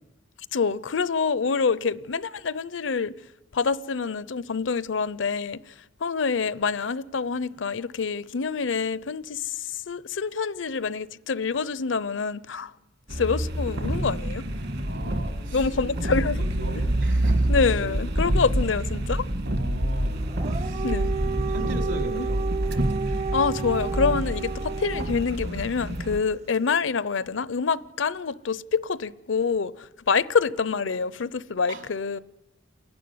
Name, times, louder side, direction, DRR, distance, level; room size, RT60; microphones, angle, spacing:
voice 1, 0.5-3.1 3.5-5.7 6.0-12.7 13.1-14.4 15.5-16.4 17.5-19.2 20.8-21.1 22.1-22.3 23.3-32.2, left 5 dB, 75° left, 0.6 m, -26 dB
sound 1, 13.1-26.2, right 1 dB, 60° right, 1.6 m, -27 dB
voice 2, 14.8-15.7 16.2-16.3 16.6-17.5 19.5-20.9 21.3-22.5 31.7-31.8, right 1 dB, 80° right, 3.8 m, -37 dB
Dog, 20.2-25.4, right 6 dB, 35° right, 0.7 m, -32 dB
28.5 x 11.5 x 9.5 m
head